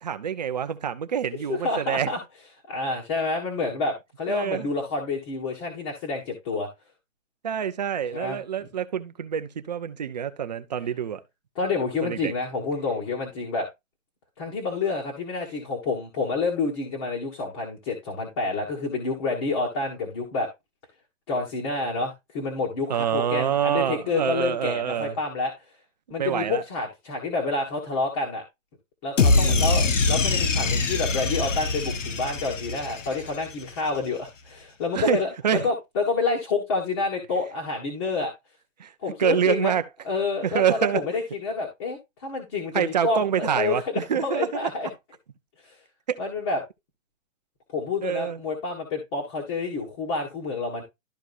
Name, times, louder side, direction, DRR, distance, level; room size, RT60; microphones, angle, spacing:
voice 1, 0.0-2.1 4.3-4.7 7.4-11.2 12.0-12.3 22.9-25.2 26.2-26.6 29.3-29.7 34.9-35.7 38.8-38.9 39.2-39.8 40.4-41.0 42.7-44.7 46.1-46.2 48.0-48.4, right 8 dB, 35° right, 0.7 m, -26 dB
voice 2, 1.5-2.2 2.7-6.7 8.1-8.4 11.6-13.7 14.4-20.5 21.3-25.5 26.1-28.4 29.0-35.3 35.6-38.3 39.0-39.7 40.0-43.8 44.2-44.9 45.6-45.7 46.2-46.6 47.7-50.8, left 3 dB, 20° left, 1.6 m, -28 dB
sound 1, 29.2-33.5, left 3 dB, 70° left, 1.4 m, -23 dB
12.5 x 4.5 x 2.6 m
hypercardioid pair, 170°, 39 cm